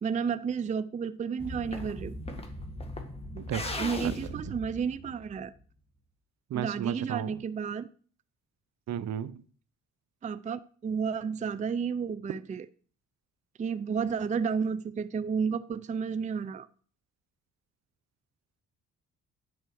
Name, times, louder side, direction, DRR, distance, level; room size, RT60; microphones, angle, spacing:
voice 1, 0.0-2.2 3.8-5.5 6.5-7.9 10.2-12.7 13.6-16.7, right 6 dB, 25° right, 14 dB, 0.4 m, -31 dB
sound 1, 1.4-5.6, left 1 dB, 20° left, 1.8 m, -38 dB
voice 2, 3.3-3.7 4.0-4.6 6.5-7.4 8.9-9.4, right 10 dB, 60° right, 15 dB, 0.8 m, -34 dB
10.5 x 4.5 x 6.4 m, 0.44 s
cardioid pair, 90°, 30 cm